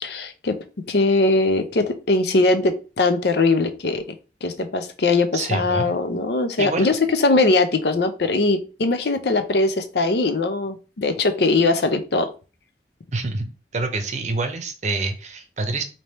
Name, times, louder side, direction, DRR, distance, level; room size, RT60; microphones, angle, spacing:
voice 1, 0.0-0.6 0.9-4.2 4.4-12.3, left 3 dB, 65° left, 8 dB, 0.6 m, -21 dB
voice 2, 5.3-6.0 6.6-6.9 13.1-13.5 13.7-15.8, right 3 dB, 40° right, 7 dB, 0.7 m, -26 dB
3.4 x 2.8 x 4.2 m, 0.33 s
head